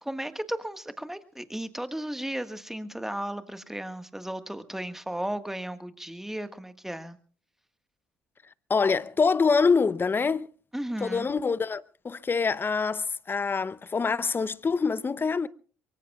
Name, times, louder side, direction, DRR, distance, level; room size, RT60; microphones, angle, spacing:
voice 1, 0.0-7.2 10.7-11.3, right 1 dB, 5° right, 1.5 m, -35 dB
voice 2, 8.7-10.5 11.0-15.5, left 5 dB, 25° left, 0.7 m, -25 dB
23.5 x 23.5 x 2.4 m
hypercardioid pair, 60°, 8 cm